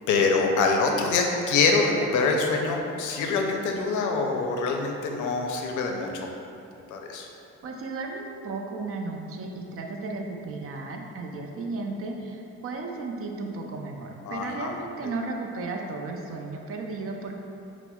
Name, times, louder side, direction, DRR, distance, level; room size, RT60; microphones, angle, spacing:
voice 1, 0.1-6.1 6.9-7.3 14.3-14.7 15.0-15.1, left 4 dB, 80° left, 2 dB, 0.5 m, -25 dB
voice 2, 7.6-17.4, right 3 dB, 50° right, 2 dB, 0.4 m, -34 dB
5.8 x 2.0 x 2.2 m, 2.8 s
cardioid pair, 90°, 30 cm